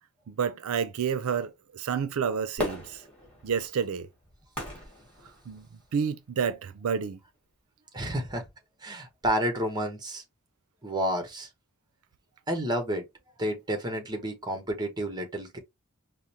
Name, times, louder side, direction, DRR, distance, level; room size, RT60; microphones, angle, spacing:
voice 1, 0.3-3.0 3.4-4.1 5.5-5.7 5.9-7.2, right 7 dB, 85° right, 0.4 m, -29 dB
Fireworks, 2.6-5.9 6.5-6.6, left 1 dB, 5° left, 1.9 m, -37 dB
voice 2, 7.9-8.4 8.8-10.2 10.8-11.5 12.5-13.0 13.4-15.6, equal, 20° right, 0.9 m, -30 dB
4.9 x 2.0 x 2.8 m
head